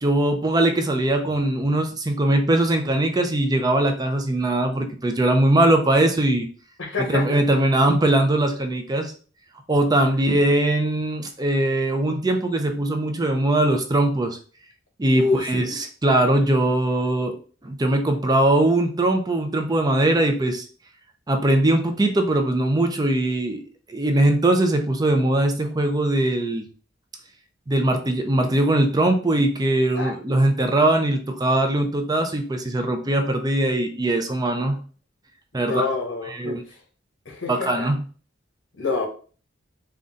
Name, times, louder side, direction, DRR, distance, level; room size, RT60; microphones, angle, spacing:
voice 1, 0.0-6.5 7.1-9.1 9.7-14.4 15.0-17.4 17.6-20.7 21.3-23.6 23.9-26.6 27.7-34.8 35.5-35.8 36.3-36.6 37.5-38.0, right 1 dB, 20° right, 5 dB, 0.5 m, -21 dB
voice 2, 6.8-7.4 15.1-15.7 29.9-30.1 35.5-36.5 37.2-37.9 38.8-39.1, left 3 dB, 75° left, 2 dB, 1.2 m, -26 dB
3.9 x 2.2 x 3.6 m, 0.40 s
head